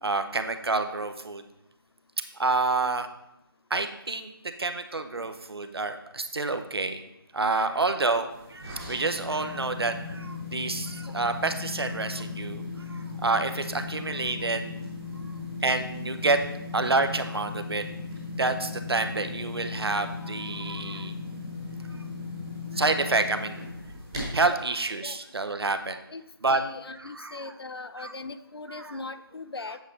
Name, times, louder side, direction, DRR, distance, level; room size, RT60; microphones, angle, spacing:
voice 1, 0.0-1.4 2.3-3.1 3.7-4.3 4.6-7.0 7.3-12.6 12.9-14.7 15.6-16.4 16.7-17.8 18.4-21.1 22.7-23.6 24.3-26.0 26.4-26.6 27.0-27.5 28.0-28.1 28.7-29.0, right 3 dB, 80° right, 8 dB, 0.8 m, -28 dB
sound 1, 8.3-24.6, left 3 dB, 10° right, 1.1 m, -37 dB
voice 2, 26.5-29.8, left 3 dB, 80° left, 12 dB, 0.6 m, -39 dB
8.1 x 5.0 x 4.0 m, 0.87 s
figure-of-eight pair, 180°, 13 cm